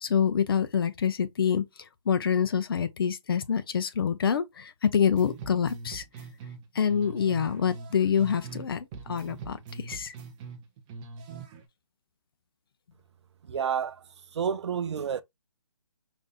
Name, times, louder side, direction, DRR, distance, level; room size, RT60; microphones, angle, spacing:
voice 1, 0.0-1.6 2.1-6.0 6.7-10.1, left 7 dB, 45° left, 0.5 m, -26 dB
sound 1, 5.1-8.7 8.9-11.6, right 5 dB, 15° right, 0.4 m, -43 dB
voice 2, 13.4-14.0 14.3-15.2, right 7 dB, 60° right, 0.6 m, -29 dB
5.1 x 2.6 x 2.4 m
hypercardioid pair, 155°, 17 cm